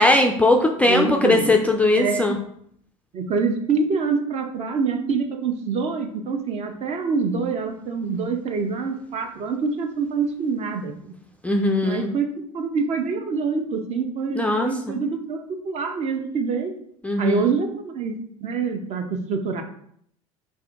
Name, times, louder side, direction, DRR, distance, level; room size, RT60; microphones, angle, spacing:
voice 1, 0.0-2.4 11.4-12.1 14.4-15.0 17.0-17.5, left 2 dB, 10° left, 2 dB, 0.3 m, -19 dB
voice 2, 0.8-1.5 1.9-2.4 3.1-11.1 11.8-12.3 12.5-16.7 17.2-19.6, right 5 dB, 40° right, 5 dB, 0.6 m, -26 dB
4.9 x 2.6 x 2.4 m, 0.68 s
hypercardioid pair, 75°, 18 cm